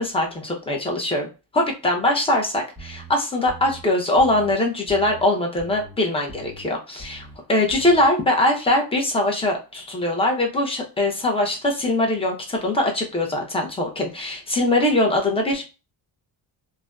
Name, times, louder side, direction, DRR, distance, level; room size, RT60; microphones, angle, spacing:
voice 1, 0.0-15.6, left 1 dB, 10° left, 1 dB, 0.6 m, -22 dB
sound 1, 2.8-3.1 3.5-3.8 4.2-4.5 4.9-5.2 5.6-5.9 6.3-6.6 7.0-7.4 7.7-8.1, right 3 dB, 10° right, 1.3 m, -41 dB
2.6 x 2.2 x 2.2 m, 0.30 s
cardioid pair, 110°, 50 cm